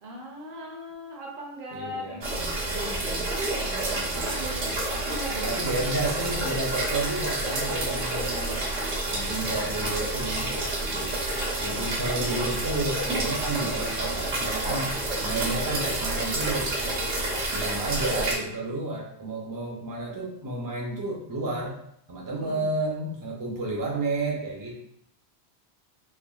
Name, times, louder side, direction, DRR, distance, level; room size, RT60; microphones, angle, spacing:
voice 1, 0.0-5.7 22.4-22.7, right 1 dB, 60° right, -1 dB, 0.8 m, -38 dB
voice 2, 1.7-2.2 4.4-4.7 5.4-8.6 9.1-10.5 10.8-11.2 11.6-14.9 15.2-16.7 17.5-21.8 22.1-24.8, right 2 dB, 30° right, -2 dB, 0.4 m, -31 dB
sound 1, 2.2-18.3, right 2 dB, 85° right, 1.1 m, -29 dB
3.4 x 2.2 x 2.3 m, 0.73 s
omnidirectional pair, 1.1 m